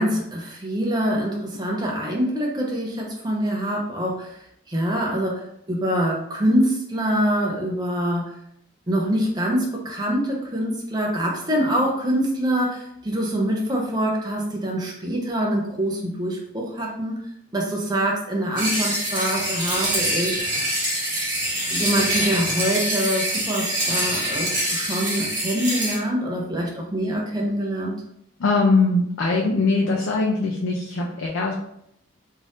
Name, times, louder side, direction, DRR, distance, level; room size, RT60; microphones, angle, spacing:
voice 1, 0.0-4.4 4.7-8.3 8.9-17.2 17.5-20.7 21.7-28.0, equal, 20° right, -2 dB, 0.5 m, -25 dB
sound 1, 18.6-26.0, right 1 dB, 40° right, 1.2 m, -25 dB
voice 2, 28.4-31.5, left 3 dB, 75° left, -1 dB, 0.4 m, -21 dB
2.6 x 2.5 x 3.4 m, 0.74 s
head